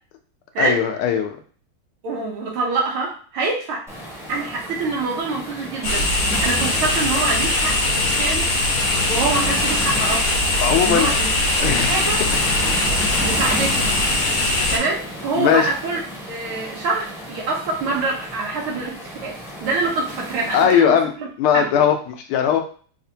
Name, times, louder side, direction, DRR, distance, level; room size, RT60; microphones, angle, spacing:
voice 1, 0.6-1.4 10.6-11.1 11.6-12.1 13.0-13.3 15.3-15.7 20.5-21.1 21.4-22.6, left 8 dB, 80° left, 4 dB, 1.5 m, -19 dB
voice 2, 2.0-3.9 4.3-6.1 6.4-8.5 9.1-10.5 10.8-11.3 11.6-12.2 13.2-13.9 14.7-16.0 16.3-21.3 21.5-21.8, right 3 dB, 80° right, -1 dB, 1.8 m, -25 dB
Waves surf, 3.9-20.6, equal, 5° right, 0.3 m, -33 dB
sound 1, 5.8-14.8, left 2 dB, 55° left, 1.0 m, -21 dB
4.2 x 2.6 x 2.7 m, 0.42 s
omnidirectional pair, 2.4 m